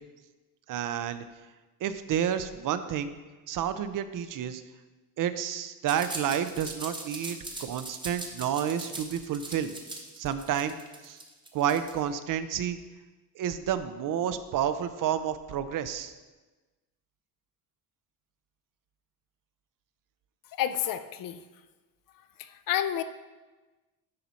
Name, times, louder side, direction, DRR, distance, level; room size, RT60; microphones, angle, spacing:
voice 1, 0.7-1.2 1.8-3.1 3.5-4.6 5.2-9.7 10.2-10.8 11.0-11.2 11.5-12.8 13.4-16.1, right 9 dB, 55° right, 11 dB, 0.5 m, -30 dB
sound 1, 5.9-12.0, right 2 dB, 10° right, 0.8 m, -40 dB
voice 2, 20.6-21.4 22.4-23.0, left 10 dB, 60° left, 11 dB, 0.5 m, -29 dB
10.5 x 4.0 x 4.2 m, 1.2 s
cardioid pair, 155°, 38 cm